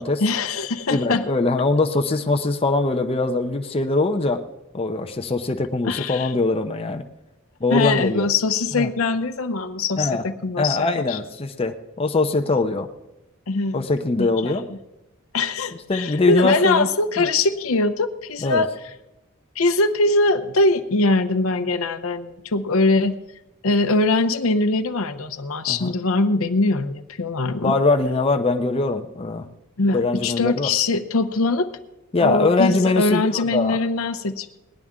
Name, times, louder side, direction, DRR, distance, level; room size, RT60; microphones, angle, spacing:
voice 1, 0.2-1.2 5.8-6.3 7.7-11.2 13.5-13.9 14.2-14.6 15.3-18.7 19.6-23.1 23.6-27.7 29.8-31.7 32.2-34.6, left 3 dB, 70° left, 9 dB, 0.7 m, -22 dB
voice 2, 0.9-4.4 4.7-7.0 7.6-8.3 8.7-8.9 10.0-10.2 10.6-12.9 13.7-14.7 15.7-16.9 17.2-17.3 18.4-18.6 25.7-25.9 27.6-29.5 29.9-30.7 32.1-33.8, left 3 dB, 25° left, 4 dB, 0.6 m, -22 dB
19.0 x 10.5 x 3.7 m, 0.95 s
head